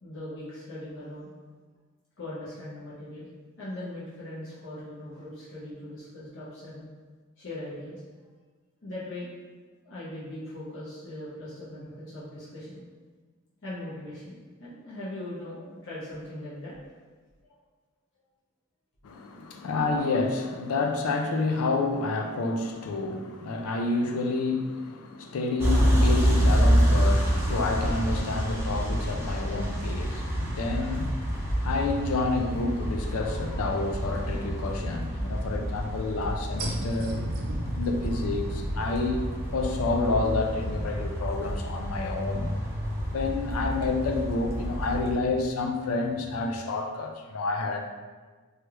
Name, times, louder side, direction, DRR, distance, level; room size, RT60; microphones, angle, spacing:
voice 1, 0.0-1.3 2.2-3.3 3.6-6.9 7.4-8.0 8.8-9.3 9.8-12.8 13.6-16.7 17.4-17.6 19.4-19.5, left 1 dB, 60° left, -9 dB, 0.8 m, -40 dB
voice 2, 19.0-37.2 37.7-39.2 39.5-42.5 43.1-47.9, left 3 dB, 80° left, 3 dB, 0.4 m, -29 dB
sound 1, 25.6-45.1, equal, 10° right, 0.4 m, -28 dB
sound 2, 28.8-31.1 31.6-31.7 36.6-46.5, right 1 dB, 70° right, 0.4 m, -41 dB
3.2 x 2.3 x 2.9 m, 1.4 s
head